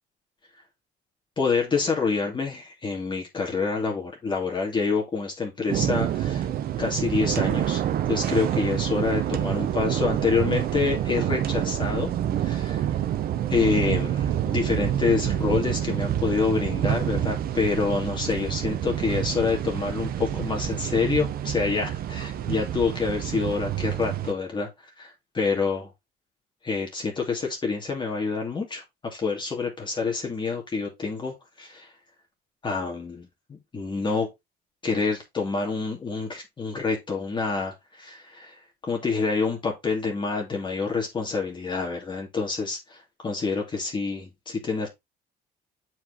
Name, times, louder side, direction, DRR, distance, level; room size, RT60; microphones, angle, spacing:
voice 1, 1.4-6.5 6.8-7.8 8.1-12.1 12.4-12.8 13.5-24.7 25.0-25.9 26.6-31.9 32.6-34.3 34.8-43.0 43.2-44.9, left 4 dB, 30° left, 2.3 m, -27 dB
sound 1, 5.7-24.3, right 11 dB, 60° right, 1.0 m, -27 dB
7.6 x 4.7 x 3.8 m
cardioid pair, 110°, 17 cm